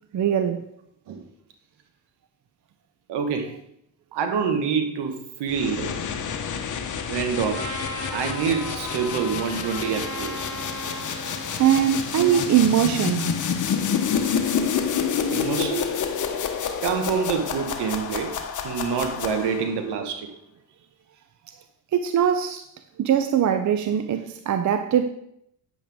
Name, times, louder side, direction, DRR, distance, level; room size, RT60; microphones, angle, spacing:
voice 1, 0.1-0.7 11.6-13.3 21.9-22.7 23.0-25.1, right 9 dB, 45° right, 0.7 m, -21 dB
voice 2, 3.1-3.5 4.1-6.0 7.1-7.8 8.1-10.5 12.1-12.5 15.3-15.9 16.8-18.3 18.6-20.3, right 6 dB, 70° right, 1.7 m, -26 dB
sound 1, 5.5-19.8, left 7 dB, 45° left, 1.2 m, -28 dB
Trumpet, 7.5-11.8, equal, 90° right, 3.6 m, -36 dB
9.1 x 7.8 x 3.6 m
supercardioid pair, 75°, 43 cm